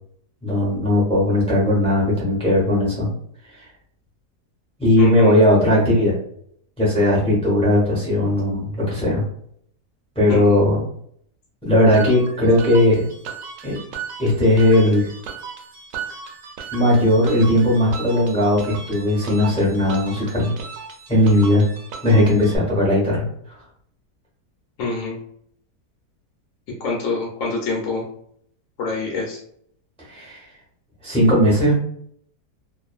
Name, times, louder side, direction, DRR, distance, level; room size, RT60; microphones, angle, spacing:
voice 1, 0.4-3.1 4.8-6.2 6.8-9.2 10.2-10.8 11.6-13.1 13.6-13.8 14.2-15.1 16.7-20.5 21.1-21.7 22.0-23.2 30.1-30.4 31.0-31.7, left 1 dB, 5° left, -5 dB, 0.7 m, -17 dB
voice 2, 5.0-5.3 10.3-10.5 24.8-25.2 26.8-28.0 28.8-29.4, left 3 dB, 65° left, -2 dB, 0.9 m, -25 dB
sound 1, 11.9-22.6, right 5 dB, 70° right, 0.8 m, -36 dB
2.5 x 2.4 x 2.3 m, 0.66 s
omnidirectional pair, 1.7 m